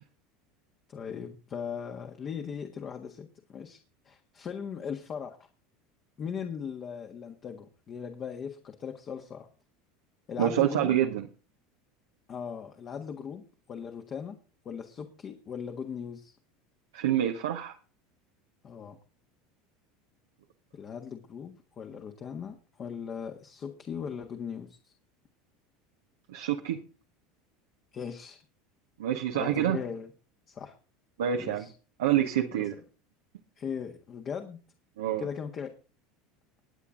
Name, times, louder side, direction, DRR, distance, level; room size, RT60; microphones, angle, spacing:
voice 1, 0.9-3.8 4.0-5.4 6.2-9.5 10.3-11.0 12.3-13.4 13.7-14.4 14.6-16.3 18.6-19.0 20.7-24.9 27.9-28.4 29.3-30.1 30.5-30.7 31.4-31.7 32.5-32.8 33.6-34.6 35.2-35.7, left 7 dB, 40° left, 4 dB, 1.6 m, -38 dB
voice 2, 10.4-11.3 16.9-17.7 26.3-26.8 29.0-29.8 31.2-31.7 32.0-32.7 35.0-35.2, right 11 dB, 75° right, 3 dB, 1.1 m, -27 dB
21.0 x 8.5 x 3.8 m, 0.36 s
hypercardioid pair, 80°, 0 cm